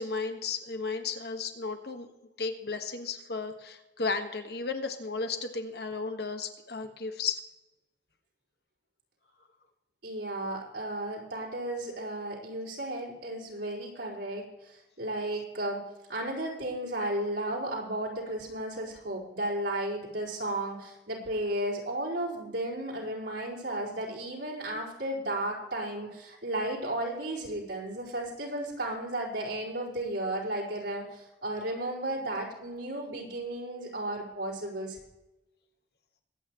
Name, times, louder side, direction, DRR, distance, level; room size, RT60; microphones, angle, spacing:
voice 1, 0.0-2.1 2.4-7.4, left 4 dB, 65° left, 6 dB, 1.5 m, -34 dB
voice 2, 10.0-35.0, right 1 dB, 80° right, -4 dB, 4.5 m, -34 dB
22.5 x 9.1 x 3.1 m, 0.99 s
head